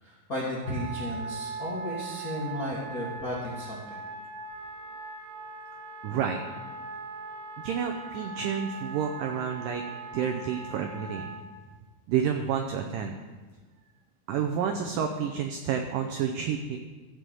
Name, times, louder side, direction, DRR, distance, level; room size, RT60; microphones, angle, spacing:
voice 1, 0.0-4.0, left 1 dB, 60° left, -5 dB, 0.9 m, -34 dB
Wind instrument woodwind instrument, 0.6-11.5, right 3 dB, 70° right, 2.5 m, -40 dB
voice 2, 6.0-6.4 7.6-9.8 10.1-11.3 12.1-13.2 14.3-16.8, right 7 dB, 85° right, 4 dB, 1.9 m, -29 dB
14.5 x 4.9 x 7.7 m, 1.3 s
omnidirectional pair, 4.7 m